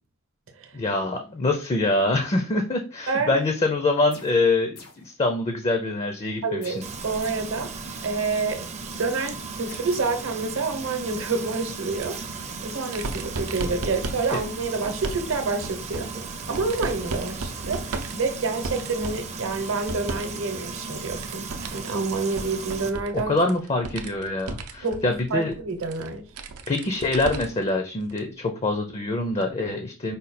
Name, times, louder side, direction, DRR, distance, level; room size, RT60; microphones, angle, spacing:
voice 1, 0.7-6.8 23.1-25.5 26.7-30.2, left 2 dB, 25° left, 0.4 m, -25 dB
voice 2, 3.1-3.4 6.4-7.7 8.0-8.6 9.0-16.1 16.5-21.5 21.7-23.3 24.8-25.0 25.3-26.3, right 3 dB, 65° right, 0.8 m, -28 dB
sound 1, 4.1-4.5 4.8-5.1 6.6-7.6 9.7-10.0, left 4 dB, 75° left, 1.2 m, -47 dB
Frying (food), 6.8-22.9, right 4 dB, 30° right, 0.5 m, -36 dB
sound 2, 11.9-20.4 20.7-27.7 28.1-28.2 29.4-29.5, right 3 dB, 90° right, 0.6 m, -36 dB
5.1 x 2.3 x 4.1 m
head